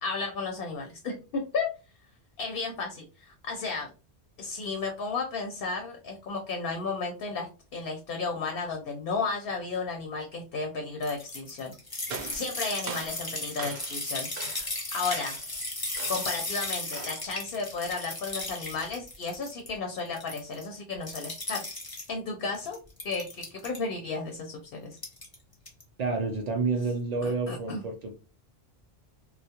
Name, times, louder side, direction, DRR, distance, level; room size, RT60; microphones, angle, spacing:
voice 1, 0.0-1.7 2.4-3.9 4.4-11.7 12.3-15.4 16.1-21.6 22.1-22.8 23.0-25.0 27.2-27.8, left 4 dB, 65° left, 3 dB, 0.7 m, -33 dB
sound 1, 11.0-19.7 20.0-20.7 21.0-22.1 22.5-23.8 24.9-25.3 25.7-25.8, left 2 dB, 25° left, 0.6 m, -36 dB
sound 2, 12.1-14.1 14.4-14.8 15.1-15.5 16.0-16.4 16.9-17.3, right 5 dB, 80° right, 0.9 m, -41 dB
voice 2, 26.0-28.1, right 3 dB, 55° right, 2 dB, 0.5 m, -29 dB
2.2 x 2.0 x 2.7 m, 0.32 s
omnidirectional pair, 1.1 m